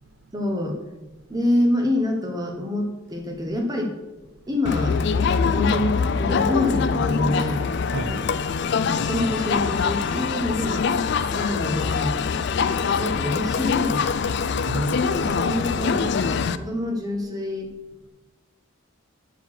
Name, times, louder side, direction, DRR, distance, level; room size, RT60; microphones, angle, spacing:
voice 1, 0.3-0.8 1.3-3.9 4.5-7.7 8.0-8.2 9.0-10.9 11.3-12.2 13.0-14.5 15.1-17.7, left 1 dB, 20° right, 2 dB, 1.0 m, -26 dB
voice 2, 4.2-4.6 7.9-9.0 14.6-15.4, right 1 dB, 65° right, 6 dB, 0.7 m, -35 dB
Crowd, 4.6-16.6, left 5 dB, 55° left, 0.3 m, -24 dB
6.9 x 6.3 x 5.8 m, 1.1 s
head